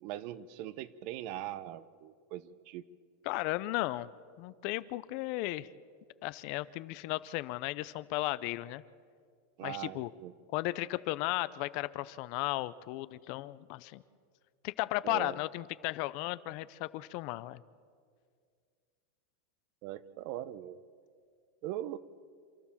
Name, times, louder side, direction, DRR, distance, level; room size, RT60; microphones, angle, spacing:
voice 1, 0.0-2.8 9.6-10.3 15.0-15.3 19.8-20.8 21.6-22.0, right 13 dB, 50° right, 16 dB, 0.8 m, -41 dB
voice 2, 3.2-4.1 4.4-5.7 6.2-8.8 9.6-10.1 10.5-14.0 14.6-17.6, left 18 dB, 50° left, 17 dB, 0.6 m, -35 dB
28.0 x 12.5 x 7.3 m, 2.1 s
supercardioid pair, 150°, 0 cm